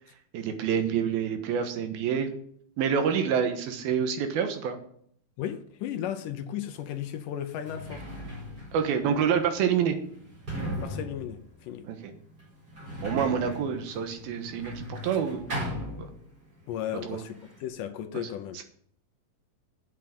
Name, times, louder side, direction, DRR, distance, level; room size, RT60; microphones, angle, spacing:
voice 1, 0.3-2.3 2.8-4.8 8.7-10.0 11.8-12.1 13.0-15.5 16.0-16.1 17.1-17.2 18.1-18.2 18.6-18.7, right 7 dB, 85° right, 7 dB, 3.2 m, -27 dB
voice 2, 5.4-8.1 10.8-11.9 16.7-18.6, left 10 dB, 75° left, 8 dB, 2.1 m, -35 dB
Sliding door, 6.7-6.8 7.4-16.6 16.9-17.7, equal, 25° right, 4.7 m, -38 dB
8.3 x 7.5 x 8.5 m, 0.64 s
omnidirectional pair, 4.2 m